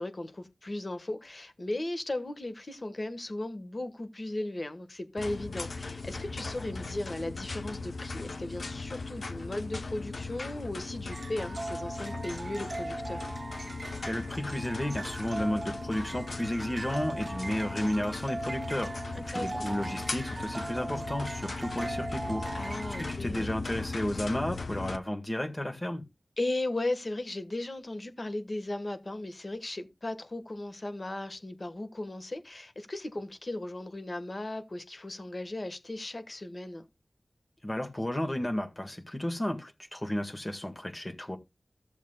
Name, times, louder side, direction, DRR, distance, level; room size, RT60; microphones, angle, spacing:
voice 1, 0.0-13.3 19.1-19.7 22.5-23.5 26.4-36.9, left 2 dB, 50° left, 1.4 m, -36 dB
sound 1, 5.2-25.0, left 3 dB, 80° left, 0.8 m, -38 dB
sound 2, 11.1-23.1, right 2 dB, 50° right, 0.5 m, -39 dB
voice 2, 14.0-19.0 19.3-22.4 23.0-26.0 37.6-41.4, left 1 dB, 30° left, 1.8 m, -33 dB
14.5 x 7.2 x 2.3 m
wide cardioid pair, 45°, 0 cm